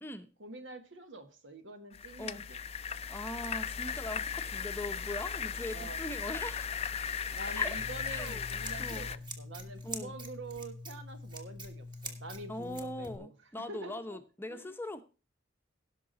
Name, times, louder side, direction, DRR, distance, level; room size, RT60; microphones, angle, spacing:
voice 1, 0.4-2.6 5.7-6.0 7.3-13.3 13.6-14.2 14.5-14.7, right 2 dB, 75° right, 1.4 m, -46 dB
sound 1, 1.9-9.2, left 6 dB, 35° left, 0.4 m, -37 dB
voice 2, 3.1-6.9 7.6-7.8 8.1-8.5 8.8-9.1 9.8-10.2 12.5-15.0, left 1 dB, 10° left, 0.8 m, -41 dB
Scissors, 7.8-13.2, equal, 25° right, 1.7 m, -44 dB
17.5 x 6.0 x 3.9 m
head